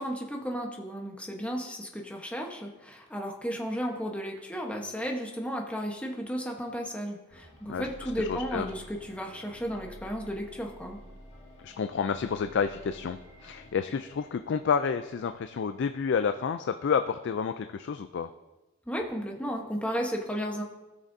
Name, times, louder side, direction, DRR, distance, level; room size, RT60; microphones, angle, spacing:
voice 1, 0.0-11.0 18.9-20.6, equal, 5° left, 1 dB, 1.0 m, -34 dB
sound 1, 7.3-16.4, equal, 35° left, 2.2 m, -51 dB
voice 2, 7.7-8.7 11.6-18.3, left 6 dB, 55° left, 9 dB, 0.3 m, -30 dB
18.0 x 6.4 x 2.7 m, 1.1 s
head